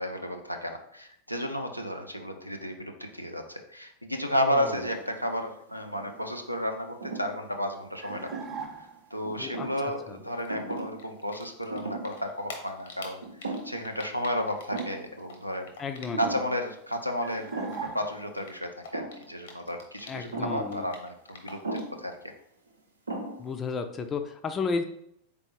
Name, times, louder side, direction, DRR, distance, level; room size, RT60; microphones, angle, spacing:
voice 1, 0.0-8.3 9.1-15.7 16.2-22.2, equal, 90° left, 3 dB, 0.4 m, -32 dB
sound 1, 4.6-5.2 5.7-6.4 7.0-7.3 8.1-8.8 9.3-9.8 10.5-11.0 11.3-11.4 11.7-12.2 12.6-12.7 13.2-13.9 14.2-14.3 14.7-15.1 16.1-16.5 17.5-18.0 18.9-19.3 20.3-20.7 21.6-22.0 22.7-22.8 23.1-23.6, right 3 dB, 80° right, 0.7 m, -37 dB
sound 2, 8.0-9.2 17.2-18.5, right 6 dB, 25° right, 0.6 m, -41 dB
Typing, 10.4-11.8 12.0-16.5 16.8-20.4 20.6-22.0, left 4 dB, 60° left, 0.8 m, -46 dB
voice 2, 15.8-16.4 20.1-20.9 23.4-24.8, left 5 dB, 20° left, 8 dB, 0.4 m, -33 dB
4.0 x 3.4 x 2.9 m, 0.71 s
figure-of-eight pair, 90°, 0 cm